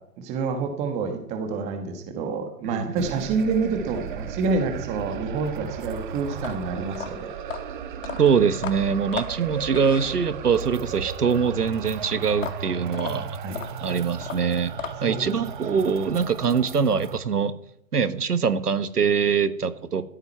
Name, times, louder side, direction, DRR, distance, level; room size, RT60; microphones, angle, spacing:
voice 1, 0.2-7.3 13.4-13.8 15.1-15.3, right 4 dB, 15° right, 6 dB, 1.4 m, -28 dB
voice 2, 2.6-3.2 8.2-13.4 13.8-14.7 15.0-17.5 17.9-20.1, right 6 dB, 80° right, 13 dB, 1.5 m, -23 dB
sound 1, 3.0-17.2, right 7 dB, 30° right, 1.3 m, -35 dB
sound 2, 6.3-10.6 12.3-15.3, left 7 dB, 55° left, 2.2 m, -36 dB
14.5 x 13.5 x 4.6 m, 0.73 s
hypercardioid pair, 145°, 46 cm